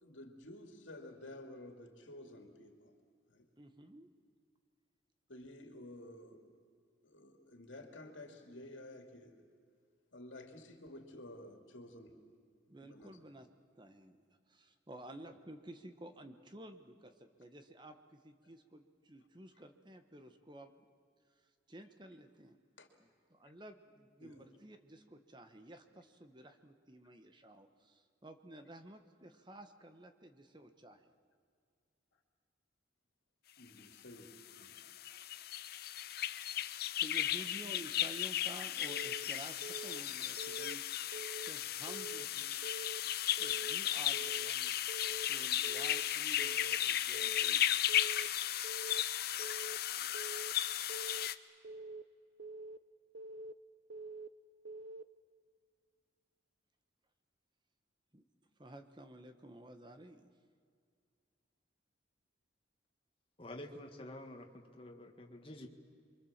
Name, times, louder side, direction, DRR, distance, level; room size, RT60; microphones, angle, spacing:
voice 1, 0.0-2.9 3.3-3.5 5.3-6.4 7.0-9.4 10.1-12.2 12.7-13.1 22.8-22.9 24.2-24.4 33.6-34.7, left 1 dB, 75° left, 4 dB, 2.6 m, -52 dB
voice 2, 3.6-4.1 12.7-13.5 13.8-20.9 21.4-22.6 23.0-31.1 37.0-40.8 41.3-42.7 43.0-44.7 45.0-47.8 58.1-58.2 58.6-60.3, right 1 dB, 25° right, 7 dB, 1.3 m, -53 dB
sound 1, 34.6-51.3, left 12 dB, 50° left, 0.6 m, -35 dB
Keyboard (musical) / Alarm, 38.9-39.2 39.6-40.0 40.4-40.7 41.1-41.5 41.9-42.3 42.6-43.0 43.4-43.8 44.1-44.5 44.9-45.3 45.6-46.0 46.4-46.8 47.1-47.5 47.9-48.3 48.6-49.0 49.4-49.8 50.1-50.5 50.9-51.3 51.6-52.0 52.4-52.8 53.1-53.5 53.9-54.3 54.6-55.0, right 2 dB, 65° right, 0.7 m, -46 dB
voice 3, 63.4-65.7, left 1 dB, 25° left, 2 dB, 1.8 m, -49 dB
28.0 x 24.0 x 7.4 m, 2.2 s
head